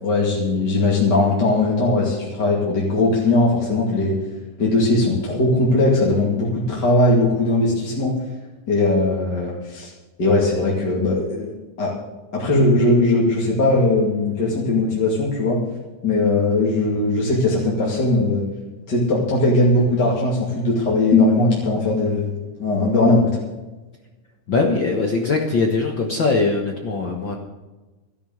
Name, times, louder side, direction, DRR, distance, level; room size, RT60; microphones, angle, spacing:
voice 1, 0.0-4.2 4.6-8.1 8.7-9.9 10.2-11.5 11.8-11.9 12.3-15.6 16.0-18.5 18.9-23.3, left 2 dB, 35° left, -4 dB, 2.7 m, -19 dB
voice 2, 24.5-27.4, left 3 dB, 50° left, 1 dB, 1.5 m, -21 dB
14.0 x 11.0 x 6.5 m, 1.2 s
omnidirectional pair, 3.8 m